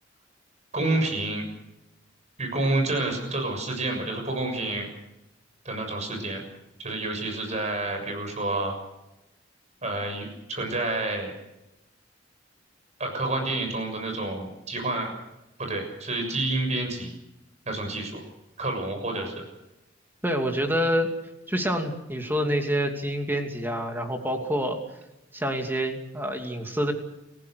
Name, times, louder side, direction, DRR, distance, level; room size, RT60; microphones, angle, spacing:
voice 1, 0.7-1.4 2.4-4.9 5.6-6.4 6.8-8.7 9.8-11.3 13.0-15.1 15.6-17.1 17.6-18.2 18.6-19.3, right 2 dB, 35° right, 4 dB, 6.8 m, -29 dB
voice 2, 20.2-21.1 21.5-24.8 25.3-26.9, equal, 10° right, 3 dB, 2.8 m, -27 dB
29.0 x 16.0 x 6.6 m, 0.94 s
head